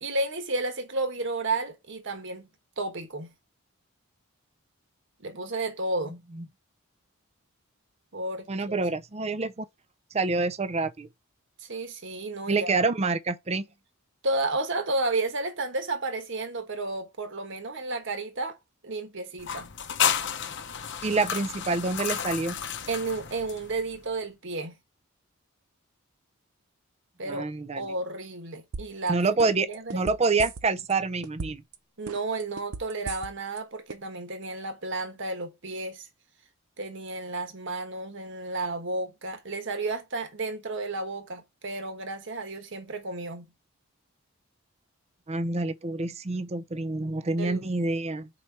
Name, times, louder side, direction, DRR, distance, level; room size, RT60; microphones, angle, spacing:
voice 1, 0.0-2.5 2.8-3.3 5.2-6.2 8.1-8.8 11.6-12.8 14.2-18.6 18.8-19.7 22.9-24.8 27.2-27.5 27.8-29.2 29.7-30.0 32.0-36.1 36.8-43.5 47.4-47.6, right 2 dB, 60° right, 1.3 m, -32 dB
voice 2, 8.5-9.7 10.1-11.1 12.5-13.7 21.0-22.6 27.3-27.9 29.1-31.6 45.3-48.3, right 3 dB, 30° right, 0.5 m, -27 dB
sound 1, 19.4-24.0, left 8 dB, 55° left, 0.7 m, -31 dB
sound 2, 28.7-29.1 29.4-30.9 31.2-31.7 32.1-33.6 33.9-34.0, right 4 dB, 85° right, 0.7 m, -36 dB
4.9 x 4.2 x 4.7 m
head